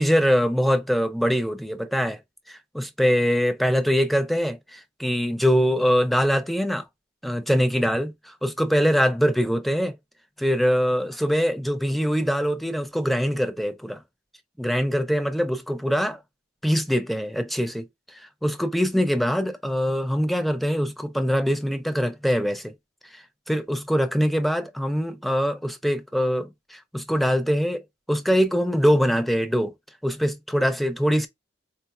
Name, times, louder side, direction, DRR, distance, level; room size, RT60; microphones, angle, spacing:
voice 1, 0.0-2.2 2.5-6.8 7.2-10.0 10.4-14.0 14.6-16.2 16.6-17.9 18.1-22.7 23.1-29.7 30.0-31.3, equal, ahead, 0.4 m, -23 dB
4.1 x 2.1 x 2.3 m
head